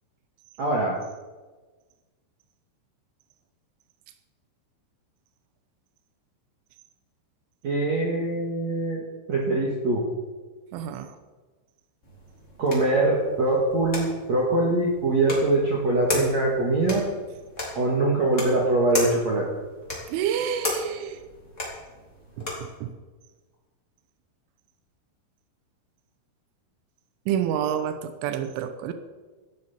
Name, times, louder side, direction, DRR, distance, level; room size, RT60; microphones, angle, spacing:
voice 1, 0.6-0.9 7.6-10.0 12.6-17.0 17.8-19.5, right 2 dB, 50° right, -3 dB, 2.4 m, -23 dB
voice 2, 10.7-11.1 20.1-21.2 27.3-28.9, right 9 dB, 85° right, 8 dB, 3.4 m, -28 dB
sound 1, 12.0-22.8, left 2 dB, 20° left, 3.0 m, -35 dB
16.5 x 12.5 x 4.4 m, 1.3 s
omnidirectional pair, 5.5 m